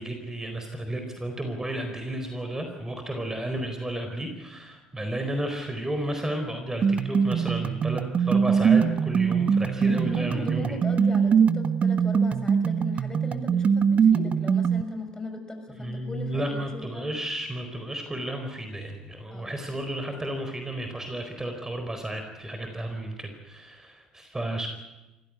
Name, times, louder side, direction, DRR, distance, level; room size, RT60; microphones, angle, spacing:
voice 1, 0.0-10.8 15.8-24.7, right 1 dB, 15° right, 5 dB, 4.4 m, -33 dB
sound 1, 6.8-14.8, right 6 dB, 40° right, 1.1 m, -23 dB
voice 2, 9.9-17.1 19.3-19.5, left 1 dB, 15° left, 6 dB, 6.2 m, -37 dB
26.0 x 16.5 x 9.8 m, 1.0 s
hypercardioid pair, 60°, 4 cm